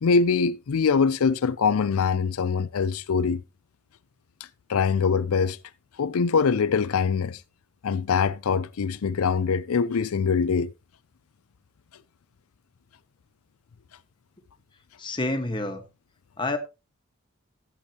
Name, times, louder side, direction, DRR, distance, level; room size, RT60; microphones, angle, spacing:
voice 1, 0.0-3.4 4.7-5.6 6.0-7.4 7.8-10.7, left 5 dB, 85° left, 0.5 m, -23 dB
voice 2, 15.0-15.8 16.4-16.6, left 2 dB, 20° left, 1.4 m, -28 dB
15.5 x 8.4 x 2.9 m
head